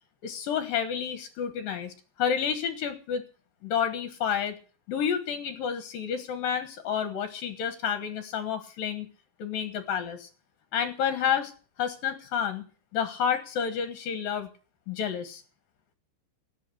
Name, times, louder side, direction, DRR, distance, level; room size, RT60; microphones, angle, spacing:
voice 1, 0.2-3.2 3.6-4.6 4.9-9.1 9.4-10.3 10.7-11.5 11.8-12.6 12.9-14.5 14.9-15.4, left 8 dB, 65° left, 9 dB, 2.4 m, -30 dB
18.0 x 8.3 x 8.0 m, 0.37 s
omnidirectional pair, 5.7 m